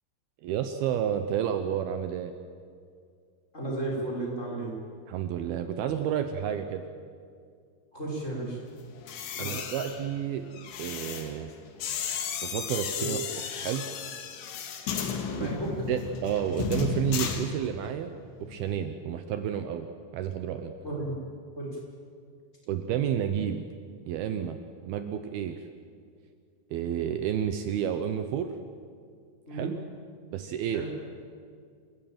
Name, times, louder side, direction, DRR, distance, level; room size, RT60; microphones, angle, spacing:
voice 1, 0.4-2.3 5.1-6.8 9.4-10.5 10.8-11.5 12.4-13.2 13.5-13.9 15.4-15.5 15.9-18.1 18.4-20.7 22.7-23.6 24.1-25.7 26.7-28.5 29.5-29.7 30.3-30.8, right 9 dB, 90° right, 8 dB, 2.1 m, -30 dB
voice 2, 3.5-4.7 7.9-8.6 9.3-9.6 13.0-13.1 15.3-15.7 20.8-21.1 21.6-21.8 29.5-29.7 30.7-30.9, right 2 dB, 15° left, -3 dB, 5.5 m, -33 dB
sound 1, 9.0-18.1 18.3-18.7, left 7 dB, 70° left, 4.0 m, -34 dB
28.0 x 16.5 x 9.0 m, 2.2 s
omnidirectional pair, 5.7 m